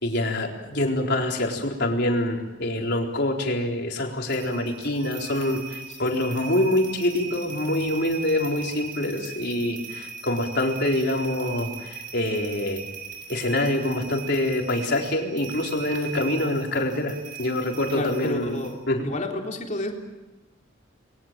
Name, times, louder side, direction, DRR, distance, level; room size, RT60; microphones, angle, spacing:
voice 1, 0.0-12.9 13.3-18.6 18.9-19.1, left 1 dB, 60° left, 1 dB, 4.2 m, -25 dB
sound 1, 4.3-18.7, right 6 dB, 45° right, 6.6 m, -39 dB
voice 2, 17.9-18.8 19.0-19.9, left 1 dB, 40° left, 1 dB, 3.9 m, -30 dB
29.5 x 22.0 x 7.6 m, 1.1 s
head